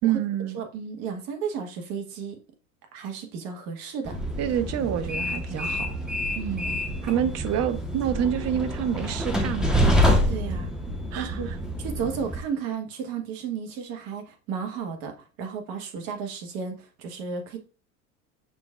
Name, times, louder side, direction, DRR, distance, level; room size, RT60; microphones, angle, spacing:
voice 1, 0.0-0.6 4.4-6.0 7.0-9.9 11.1-11.4, right 9 dB, 40° right, 0.6 m, -27 dB
voice 2, 0.5-2.4 2.9-4.2 6.3-6.8 10.3-10.7 11.1-11.5 11.8-17.6, right 6 dB, 55° right, 1.3 m, -33 dB
Train, 4.0-12.4, equal, ahead, 0.8 m, -27 dB
5.9 x 3.4 x 2.4 m
hypercardioid pair, 80°, 42 cm